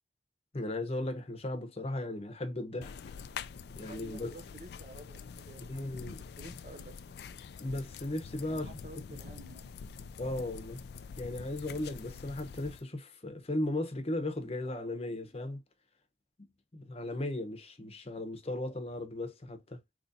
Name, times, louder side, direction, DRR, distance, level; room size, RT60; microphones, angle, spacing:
voice 1, 0.5-2.9 3.8-4.3 5.6-6.2 7.6-8.7 10.2-10.8 11.2-15.6 16.7-19.8, left 1 dB, 35° left, 0.8 m, -36 dB
sound 1, 2.8-12.8, left 6 dB, 65° left, 0.3 m, -46 dB
voice 2, 3.5-6.0 6.4-7.2 8.5-9.8, right 2 dB, 40° right, 0.7 m, -51 dB
4.0 x 3.0 x 2.6 m
head